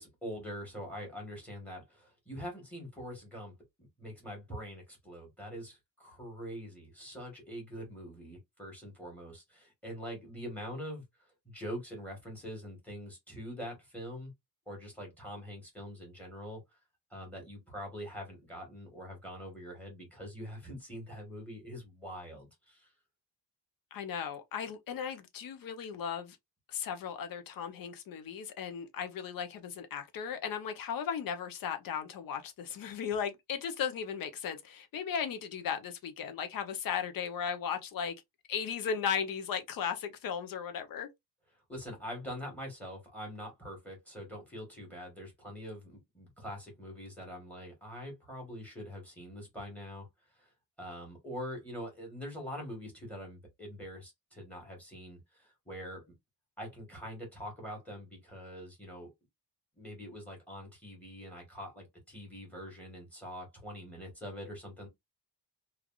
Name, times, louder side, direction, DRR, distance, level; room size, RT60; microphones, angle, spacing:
voice 1, 0.0-3.5 3.8-11.0 11.4-14.3 14.7-16.6 17.1-22.9 41.7-50.1 50.4-50.5 50.8-56.0 56.6-59.1 59.7-64.9, equal, 5° left, 1.3 m, -44 dB
voice 2, 23.9-26.4 26.7-38.1 38.5-41.1, left 7 dB, 55° left, 0.6 m, -36 dB
3.2 x 2.4 x 2.3 m
cardioid pair, 175°, 42 cm